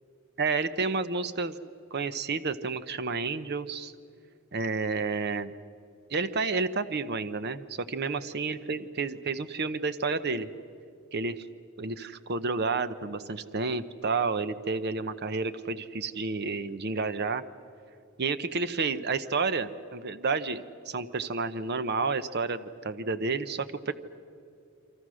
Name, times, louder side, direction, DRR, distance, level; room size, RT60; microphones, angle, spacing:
voice 1, 0.4-1.6 1.9-3.9 4.5-5.5 6.1-10.5 11.1-11.4 11.8-17.4 18.2-23.9, right 4 dB, 55° right, 12 dB, 0.9 m, -30 dB
28.0 x 25.0 x 6.4 m, 2.4 s
head